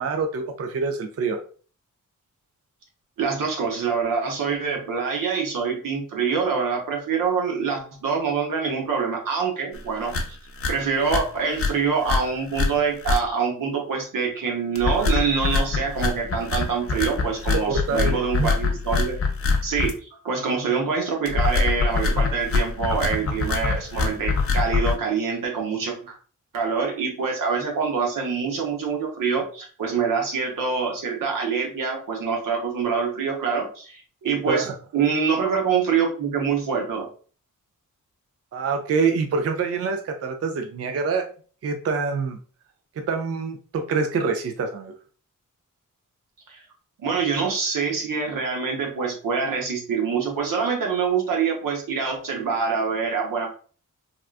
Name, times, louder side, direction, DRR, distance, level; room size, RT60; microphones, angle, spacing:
voice 1, 0.0-1.4 17.5-18.5 34.5-34.7 38.5-41.3 41.6-42.4 43.1-44.9, right 4 dB, 50° right, 5 dB, 0.4 m, -25 dB
voice 2, 3.2-10.4 10.7-19.1 19.6-19.9 20.2-26.1 26.5-34.7 34.9-37.1 46.5-46.6 47.0-53.5, right 5 dB, 85° right, 0 dB, 0.9 m, -25 dB
sound 1, 9.7-9.8 10.1-10.3 10.6-10.7 11.0-11.2 11.6-11.7 12.0-12.2 12.5-12.7 13.0-13.2 14.7-19.9 21.2-24.9, left 4 dB, 45° left, 0.6 m, -23 dB
3.6 x 2.3 x 2.4 m, 0.41 s
wide cardioid pair, 90°, 32 cm